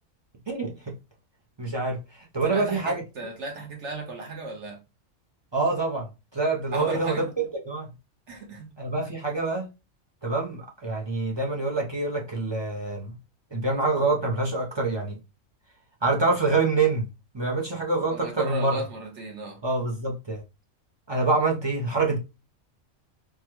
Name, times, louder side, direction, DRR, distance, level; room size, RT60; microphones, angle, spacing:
voice 1, 0.5-0.9 1.6-2.0 2.3-3.0 5.5-7.9 8.8-9.7 10.2-13.2 13.5-15.2 16.0-17.1 17.3-18.8 19.6-20.4 21.1-22.2, right 3 dB, 35° right, 0.4 m, -26 dB
voice 2, 2.4-4.8 6.7-7.3 8.3-8.7 18.1-19.6, right 2 dB, 65° right, 1.3 m, -35 dB
3.5 x 2.1 x 3.0 m
omnidirectional pair, 1.3 m